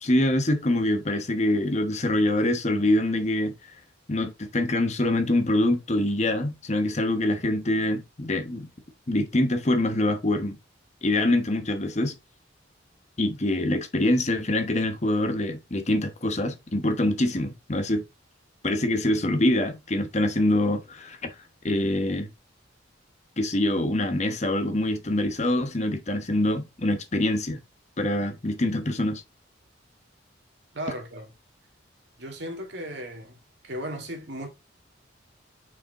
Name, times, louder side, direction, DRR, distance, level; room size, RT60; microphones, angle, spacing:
voice 1, 0.0-3.5 4.1-8.7 9.1-10.6 11.0-12.1 13.2-18.0 18.6-21.3 21.6-22.3 23.4-27.6 28.0-29.2, left 1 dB, 35° left, 1.0 m, -25 dB
voice 2, 30.7-31.3 32.2-33.4 33.6-34.5, right 1 dB, 60° right, 2.2 m, -35 dB
5.9 x 5.0 x 3.6 m
head